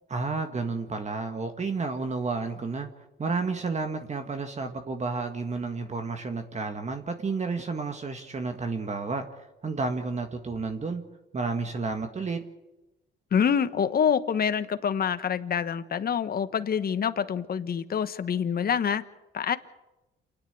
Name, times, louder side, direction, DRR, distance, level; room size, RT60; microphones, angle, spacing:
voice 1, 0.1-2.9 3.2-11.0 11.3-12.4, right 4 dB, 35° right, 6 dB, 1.8 m, -31 dB
voice 2, 13.3-19.0 19.3-19.6, left 7 dB, 50° left, 11 dB, 1.2 m, -26 dB
28.0 x 10.0 x 9.8 m, 1.0 s
cardioid pair, 90°, 20 cm